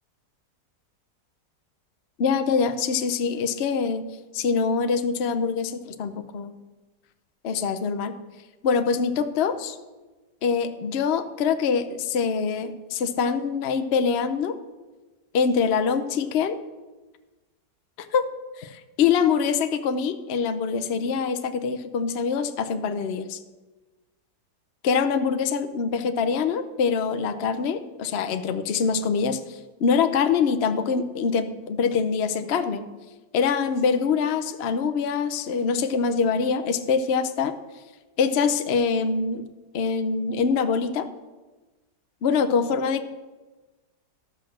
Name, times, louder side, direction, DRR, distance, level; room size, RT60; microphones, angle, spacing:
voice 1, 2.2-4.0 4.3-6.5 7.4-8.1 8.6-9.8 10.4-14.6 15.3-16.6 18.0-18.3 18.6-23.4 24.8-32.8 33.3-37.6 38.2-39.4 39.7-41.1 42.2-43.1, left 6 dB, 55° left, 8 dB, 0.7 m, -24 dB
13.0 x 6.2 x 6.4 m, 1.2 s
omnidirectional pair, 1.8 m